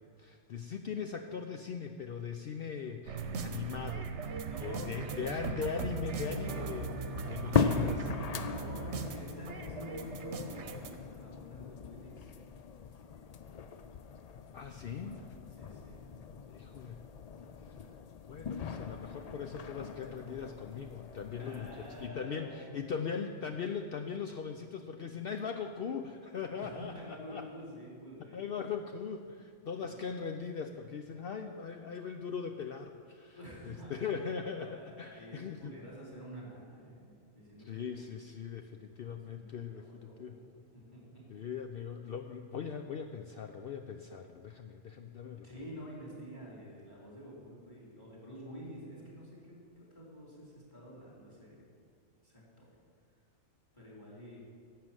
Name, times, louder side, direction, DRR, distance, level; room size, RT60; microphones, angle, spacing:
voice 1, 0.0-4.1 4.6-8.4 14.5-15.2 16.5-17.0 17.6-17.9 18.3-27.5 28.3-33.4 33.6-35.7 37.6-40.3 41.3-45.5, left 6 dB, 60° left, 6 dB, 0.7 m, -40 dB
sound 1, 3.1-11.0, right 5 dB, 65° right, 1.1 m, -39 dB
voice 2, 4.5-5.3 8.4-12.3 14.7-15.2 15.6-16.1 21.4-22.7 23.0-23.1 26.6-28.4 29.7-30.0 33.2-34.0 34.6-38.0 38.9-41.2 45.4-51.6 52.2-52.8 53.7-54.4, equal, 15° left, -5 dB, 3.7 m, -49 dB
sound 2, 5.7-22.1, left 6 dB, 90° left, 0.3 m, -39 dB
11.5 x 7.6 x 7.5 m, 2.2 s
omnidirectional pair, 1.3 m